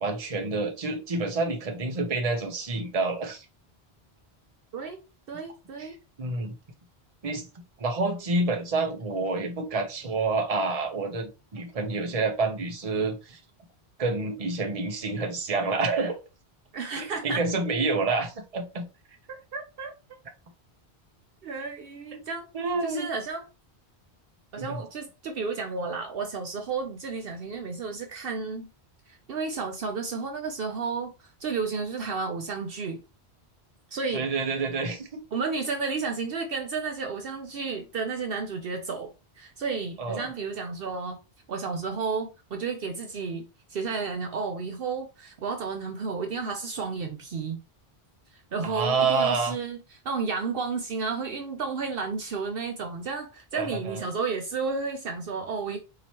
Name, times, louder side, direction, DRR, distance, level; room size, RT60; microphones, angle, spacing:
voice 1, 0.0-3.4 5.8-5.9 6.2-6.5 7.2-7.5 7.8-13.4 14.0-16.2 17.0-18.8 22.1-22.2 22.5-23.1 24.6-24.8 34.1-35.2 40.0-40.3 48.6-49.5 53.5-54.0, right 3 dB, 40° right, 0.9 m, -28 dB
voice 2, 5.3-6.0 16.7-17.4 19.3-19.9 21.4-22.5 22.8-23.5 24.5-28.7 29.1-33.0 33.9-34.3 35.3-39.1 39.4-41.2 41.5-47.6 48.3-55.8, right 4 dB, 65° right, 0.8 m, -32 dB
4.7 x 2.9 x 2.9 m
omnidirectional pair, 1.1 m